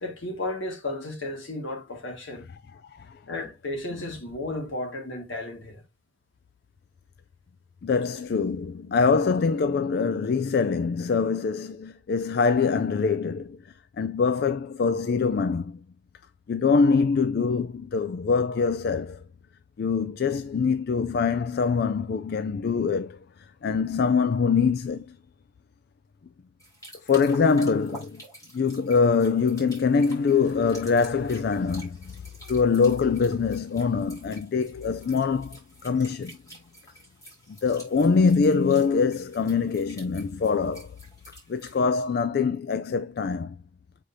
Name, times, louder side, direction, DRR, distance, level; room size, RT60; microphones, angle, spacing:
voice 1, 0.0-2.5 3.3-5.8, left 2 dB, 70° left, 1.8 m, -33 dB
voice 2, 7.8-13.6 14.0-15.8 16.5-19.2 19.8-23.2 23.6-25.2 27.1-28.2 28.5-32.2 32.5-36.4 37.6-40.9 41.5-43.6, left 5 dB, 50° left, 0.3 m, -24 dB
sound 1, 26.6-41.8, right 1 dB, 15° left, 2.9 m, -49 dB
7.4 x 4.9 x 2.7 m
head